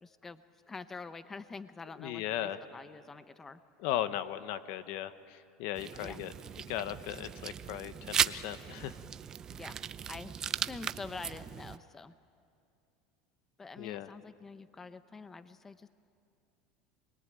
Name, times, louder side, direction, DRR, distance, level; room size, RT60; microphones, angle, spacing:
voice 1, 0.0-3.6 6.0-6.2 9.5-9.8 10.1-12.1 13.6-15.9, left 4 dB, 15° left, 12 dB, 0.8 m, -46 dB
voice 2, 2.0-2.6 3.8-6.3 6.7-9.0 13.8-14.1, left 12 dB, 65° left, 12 dB, 1.1 m, -37 dB
sound 1, 5.7-11.8, right 8 dB, 30° right, 0.6 m, -37 dB
27.5 x 21.5 x 9.0 m, 2.5 s
supercardioid pair, 125°, 2 cm